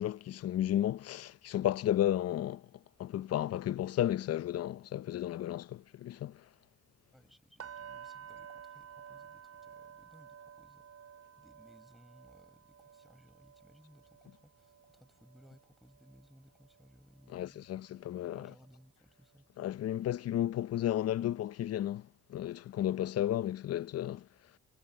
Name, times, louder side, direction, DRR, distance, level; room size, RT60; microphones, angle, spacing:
voice 1, 0.0-2.7 3.0-6.4 17.3-18.5 19.6-24.3, left 12 dB, 55° left, 0.6 m, -33 dB
voice 2, 7.1-17.6 18.2-19.5, equal, ahead, 5.4 m, -62 dB
sound 1, 7.6-17.5 17.9-18.1 18.6-18.7, right 8 dB, 55° right, 6.1 m, -53 dB
cardioid pair, 90°, 30 cm